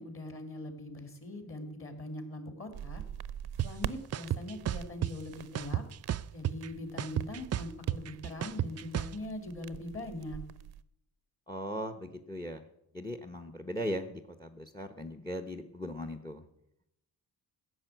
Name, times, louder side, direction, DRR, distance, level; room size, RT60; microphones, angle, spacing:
voice 1, 0.0-3.0 3.6-5.8 6.3-10.4, left 1 dB, 35° left, 6 dB, 2.7 m, -41 dB
sound 1, 2.7-10.8, right 10 dB, 75° right, 0.8 m, -45 dB
sound 2, 3.6-3.7 4.1-5.1 5.5-6.7 7.0-9.1, right 11 dB, 40° right, 0.4 m, -32 dB
voice 2, 11.5-12.6 12.9-16.4, equal, 10° left, 10 dB, 0.9 m, -38 dB
15.5 x 6.8 x 9.1 m, 0.80 s
cardioid pair, 125°, 39 cm